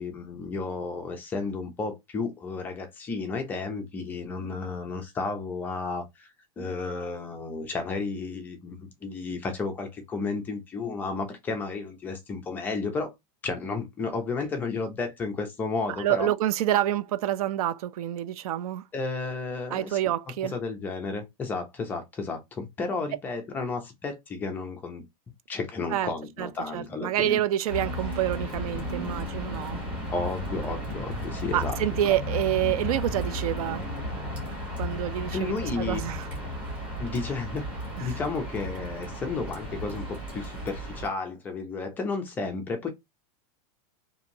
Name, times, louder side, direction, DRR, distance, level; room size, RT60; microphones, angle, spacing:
voice 1, 0.0-6.3 6.6-13.1 13.4-16.3 18.9-20.0 20.5-25.0 25.5-27.4 30.1-31.8 35.3-36.0 37.0-37.7 38.0-42.9, left 4 dB, 10° left, 0.4 m, -32 dB
voice 2, 16.0-18.8 19.7-20.5 25.9-26.1 26.4-29.8 31.5-34.2 34.7-36.3 38.0-38.2, right 12 dB, 70° right, 0.4 m, -28 dB
sound 1, 27.7-41.1, equal, 5° right, 1.1 m, -34 dB
2.8 x 2.6 x 2.6 m
supercardioid pair, 175°, 20 cm